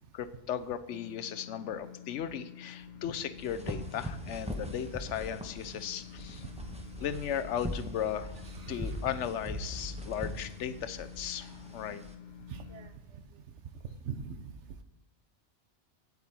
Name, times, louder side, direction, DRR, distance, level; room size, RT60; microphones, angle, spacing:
voice 1, 0.1-6.4 7.0-8.4 8.7-12.0, left 9 dB, 90° left, 12 dB, 1.0 m, -36 dB
sound 1, 0.9-12.9, left 10 dB, 65° left, 1.0 m, -50 dB
sound 2, 3.4-12.1, equal, 5° right, 1.0 m, -41 dB
voice 2, 8.5-8.9 12.5-12.9 14.0-14.4, right 6 dB, 80° right, 10 dB, 1.1 m, -41 dB
8.4 x 8.2 x 4.3 m, 0.87 s
omnidirectional pair, 1.2 m